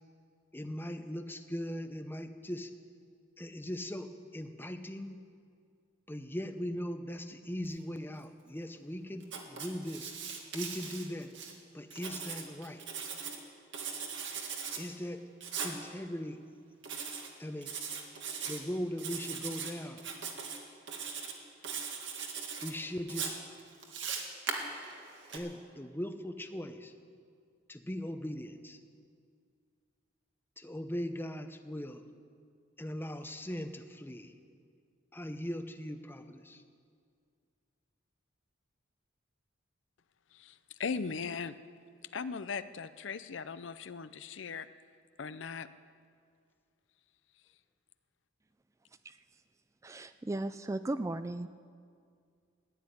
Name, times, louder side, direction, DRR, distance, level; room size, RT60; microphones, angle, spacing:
voice 1, 0.5-2.7 3.4-5.2 6.1-10.1 10.5-11.3 11.7-12.8 14.7-15.2 15.6-16.4 17.4-17.8 18.5-20.0 22.6-23.4 25.3-26.9 27.7-28.8 30.6-32.0 32.8-34.3 35.1-36.6, equal, 10° left, 0.8 m, -39 dB
Writing, 9.2-11.5 11.9-13.4 13.7-14.8 15.4-15.7 16.8-17.3 17.6-18.6 19.0-19.7 20.0-20.6 20.9-21.3 21.6-22.7 23.1-25.4, right 6 dB, 65° right, 1.9 m, -39 dB
voice 2, 40.8-41.6 42.1-44.7 45.2-45.7, left 5 dB, 70° left, 0.5 m, -38 dB
voice 3, 49.8-51.5, right 2 dB, 15° right, 0.3 m, -36 dB
15.0 x 9.8 x 9.7 m
head